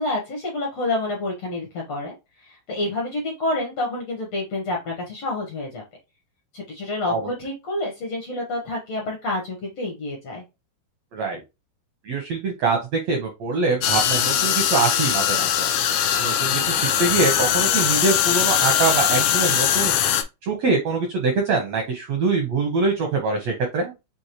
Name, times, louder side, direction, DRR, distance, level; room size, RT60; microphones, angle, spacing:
voice 1, 0.0-5.8 6.5-10.4, left 2 dB, 70° left, 0 dB, 1.5 m, -28 dB
voice 2, 12.0-15.7 16.2-19.9 20.4-23.9, right 4 dB, 80° right, 2 dB, 1.5 m, -24 dB
sound 1, 13.8-20.2, left 10 dB, 85° left, 1.7 m, -21 dB
6.2 x 2.8 x 2.9 m, 0.25 s
omnidirectional pair, 4.3 m